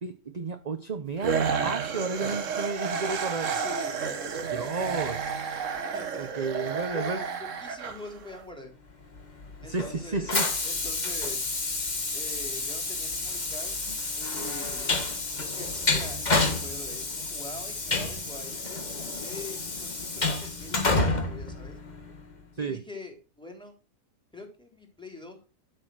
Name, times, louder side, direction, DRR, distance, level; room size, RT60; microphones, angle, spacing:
voice 1, 0.0-3.5 4.5-5.2 6.2-7.2 9.6-10.5 22.6-22.8, right 4 dB, 35° right, 9 dB, 0.9 m, -32 dB
sound 1, 1.2-8.4, right 6 dB, 70° right, 1.6 m, -31 dB
voice 2, 3.5-4.8 5.9-6.3 6.9-8.7 9.6-10.3 10.6-11.5 12.1-13.7 14.2-15.1 15.4-21.8 22.6-23.7 24.3-25.4, left 2 dB, 5° left, 3 dB, 3.6 m, -44 dB
Train, 9.1-22.3, left 3 dB, 35° left, 1.7 m, -30 dB
12.5 x 6.5 x 6.3 m, 0.32 s
omnidirectional pair, 1.4 m